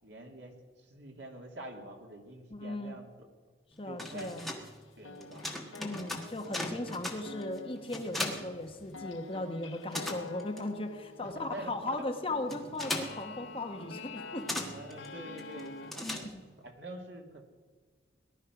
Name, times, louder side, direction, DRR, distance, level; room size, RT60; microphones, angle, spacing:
voice 1, 0.0-3.1 3.9-4.3 5.0-5.5 11.2-11.7 14.7-16.3 16.6-17.4, right 1 dB, 65° right, 1 dB, 2.5 m, -46 dB
voice 2, 2.5-3.0 3.8-4.5 5.8-14.6 16.0-16.4, left 2 dB, 30° left, 5 dB, 1.1 m, -37 dB
sound 1, 3.7-9.3 9.6-16.7, left 1 dB, ahead, 1.5 m, -40 dB
sound 2, 4.0-4.8 5.0-15.9, left 4 dB, 85° left, 0.9 m, -48 dB
18.5 x 11.5 x 6.0 m, 1.5 s
head